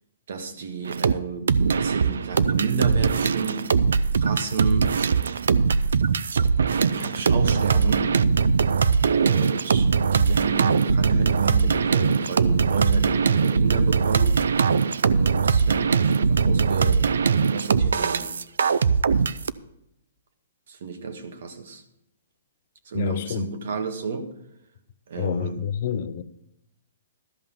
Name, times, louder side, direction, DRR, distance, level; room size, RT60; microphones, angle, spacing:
voice 1, 0.3-3.7 4.2-4.9 6.7-8.1 9.2-14.4 15.1-17.0 17.5-18.3 20.7-21.8 22.8-24.3 25.1-25.6, right 5 dB, 65° right, 1.5 m, -31 dB
sound 1, 0.9-1.1 1.5-19.5, right 5 dB, 85° right, 0.5 m, -21 dB
voice 2, 22.9-23.5 25.2-26.2, left 8 dB, 50° left, 0.6 m, -28 dB
13.0 x 5.5 x 7.0 m
hypercardioid pair, 160°, 0 cm